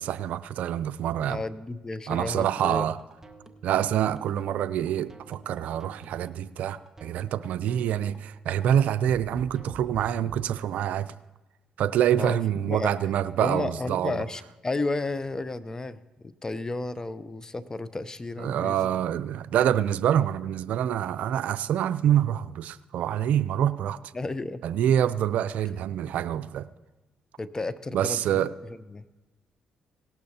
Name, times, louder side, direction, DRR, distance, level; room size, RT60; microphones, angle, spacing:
voice 1, 0.0-1.4 2.1-3.0 3.6-11.1 11.8-14.2 18.4-24.0 24.6-26.7 27.9-28.5, right 10 dB, 75° right, 15 dB, 0.4 m, -26 dB
voice 2, 1.3-2.9 12.2-12.4 12.7-12.9 13.4-18.9 24.1-24.6 27.4-29.1, left 3 dB, 25° left, 14 dB, 0.7 m, -33 dB
sound 1, 3.0-10.4, right 2 dB, 20° right, 1.2 m, -48 dB
18.0 x 12.0 x 2.8 m, 1.1 s
supercardioid pair, 65°, 3 cm